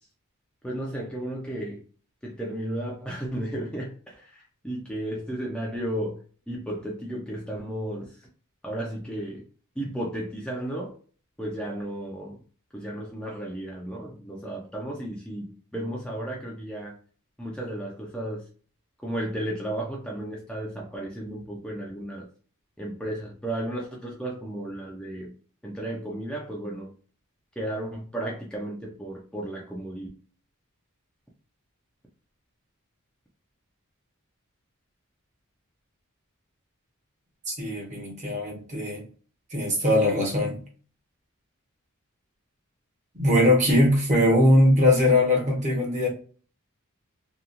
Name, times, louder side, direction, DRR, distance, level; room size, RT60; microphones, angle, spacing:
voice 1, 0.6-1.8 2.2-8.3 8.6-9.5 9.8-11.0 11.4-12.4 12.7-17.0 17.4-18.4 19.0-22.3 22.8-25.3 25.6-26.9 27.6-30.1, right 1 dB, 5° left, 0.4 m, -34 dB
voice 2, 37.5-39.0 39.5-40.6 43.1-46.1, left 1 dB, 35° right, 0.9 m, -21 dB
2.8 x 2.3 x 2.4 m
head